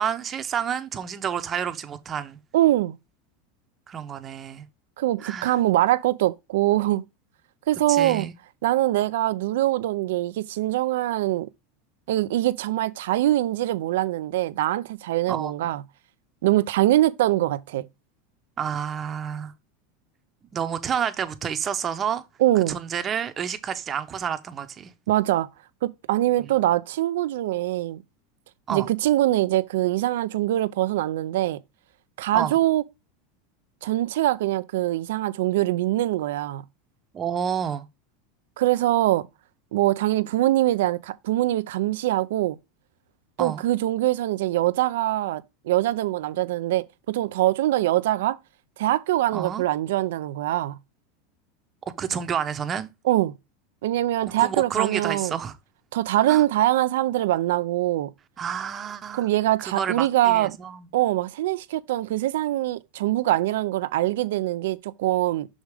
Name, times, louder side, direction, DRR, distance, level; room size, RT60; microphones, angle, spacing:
voice 1, 0.0-2.4 3.9-4.7 5.2-5.5 7.9-8.3 15.3-15.7 18.6-19.5 20.5-22.2 22.7-24.9 26.4-26.5 28.7-28.9 32.3-32.6 37.1-37.8 43.4-43.6 49.3-49.6 52.0-52.9 54.4-55.6 56.3-56.4 58.4-59.3 59.6-60.9, right 8 dB, 30° right, 0.9 m, -29 dB
voice 2, 2.5-3.0 5.0-7.0 7.7-8.3 8.6-11.5 12.1-15.8 16.4-17.9 22.4-22.8 25.1-25.5 25.8-28.0 28.7-31.6 32.2-32.8 33.8-36.6 38.6-39.3 39.7-42.6 43.4-48.4 48.8-50.8 53.1-53.3 53.8-55.4 55.9-58.1 59.1-60.5 60.9-65.5, right 15 dB, 80° right, 0.5 m, -23 dB
6.3 x 4.9 x 3.5 m
supercardioid pair, 115°, 0 cm